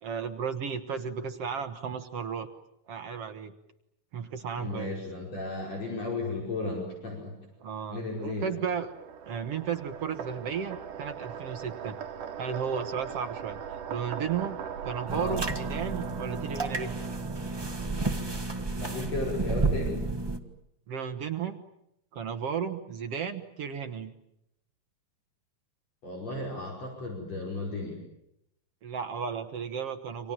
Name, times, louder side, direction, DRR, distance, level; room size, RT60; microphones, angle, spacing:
voice 1, 0.0-2.5 2.9-3.5 4.1-5.0 7.6-8.9 9.2-12.0 12.4-13.6 13.9-14.6 14.8-16.9 20.9-21.6 22.1-24.1 28.8-30.3, right 7 dB, 55° right, 7 dB, 2.0 m, -34 dB
voice 2, 4.6-7.3 7.9-8.5 15.1-15.5 18.8-20.0 26.0-28.0, left 2 dB, 50° left, -1 dB, 6.4 m, -34 dB
sound 1, 7.8-18.5, right 7 dB, 70° right, 3.5 m, -40 dB
sound 2, 15.1-20.4, right 3 dB, 15° right, 0.8 m, -31 dB
29.5 x 26.5 x 7.5 m, 0.80 s
omnidirectional pair, 3.8 m